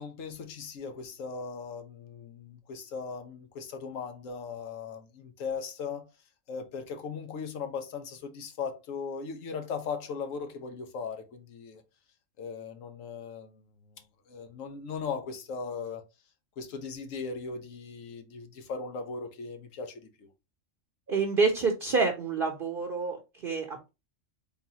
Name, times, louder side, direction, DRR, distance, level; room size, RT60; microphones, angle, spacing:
voice 1, 0.0-6.1 6.5-11.8 12.4-13.6 14.3-16.0 16.6-20.3, left 5 dB, 90° left, 1.2 m, -38 dB
voice 2, 21.1-23.9, right 4 dB, 50° right, 0.8 m, -28 dB
3.9 x 3.6 x 2.8 m
omnidirectional pair, 1.3 m